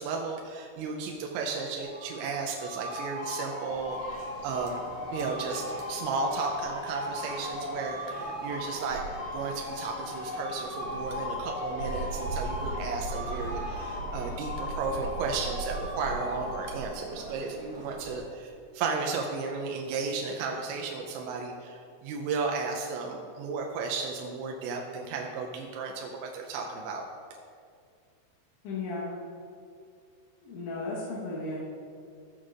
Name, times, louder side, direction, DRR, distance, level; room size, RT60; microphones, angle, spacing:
voice 1, 0.0-4.8 5.1-9.0 9.3-27.0, right 4 dB, 80° right, 1 dB, 2.7 m, -34 dB
sound 1, 1.8-17.1, left 1 dB, 45° left, 3.6 m, -38 dB
sound 2, 3.7-18.2, right 2 dB, 65° right, 2.4 m, -40 dB
voice 2, 28.6-29.2 30.4-31.6, left 2 dB, 75° left, -8 dB, 3.5 m, -35 dB
14.5 x 7.8 x 2.5 m, 2.3 s
omnidirectional pair, 5.7 m